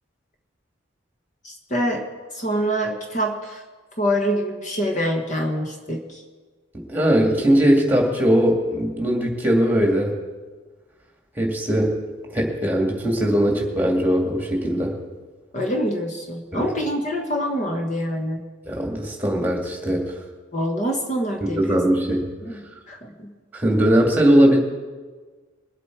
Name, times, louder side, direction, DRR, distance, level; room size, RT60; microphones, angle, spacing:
voice 1, 1.4-2.1 2.3-3.6 4.0-6.2 15.5-18.4 20.5-21.8 22.4-23.3, equal, 35° left, 2 dB, 1.3 m, -25 dB
voice 2, 6.9-10.1 11.4-12.0 12.3-14.9 16.5-16.7 18.7-20.1 21.6-22.2 23.5-24.6, equal, 10° right, 1 dB, 2.1 m, -19 dB
22.0 x 8.2 x 4.7 m, 1.4 s
head